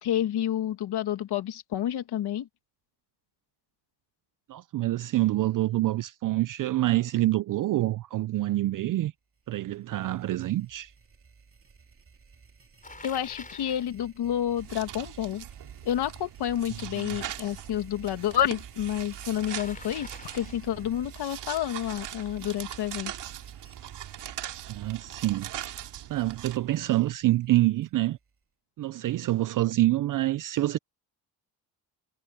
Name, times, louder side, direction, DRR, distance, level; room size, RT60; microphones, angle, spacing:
voice 1, 0.0-2.5 13.0-15.4 15.9-23.1, left 11 dB, 65° left, 1.9 m, -29 dB
voice 2, 4.5-9.1 9.5-10.9 16.9-17.2 24.7-25.5 26.1-28.2 28.8-30.8, right 16 dB, 50° right, 0.4 m, -26 dB
sound 1, 9.4-28.4, right 5 dB, 30° right, 3.2 m, -53 dB
Bicycle, 12.8-13.9 19.4-20.7, left 3 dB, 20° left, 5.5 m, -46 dB
sound 2, 14.6-26.6, right 12 dB, 70° right, 2.6 m, -41 dB
cardioid pair, 105°, 43 cm